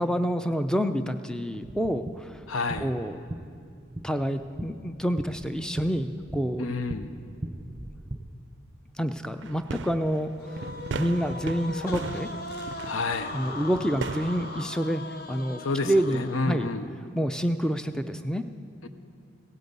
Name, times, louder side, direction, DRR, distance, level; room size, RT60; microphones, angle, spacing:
voice 1, 0.0-2.4 2.8-3.2 4.0-6.6 9.0-10.6 10.9-12.3 13.3-15.0 15.3-16.7 17.2-18.5, equal, 5° left, 9 dB, 0.4 m, -28 dB
sound 1, 1.6-8.2, right 1 dB, 15° right, 0.9 m, -40 dB
voice 2, 2.5-2.9 6.6-7.1 12.8-13.3 15.6-16.9 18.8-18.9, left 3 dB, 85° left, 9 dB, 0.7 m, -29 dB
sound 2, 9.4-14.6, right 5 dB, 60° right, 0.4 m, -38 dB
sound 3, 10.4-16.7, left 3 dB, 50° left, 0.7 m, -39 dB
16.0 x 9.3 x 8.2 m, 2.4 s
head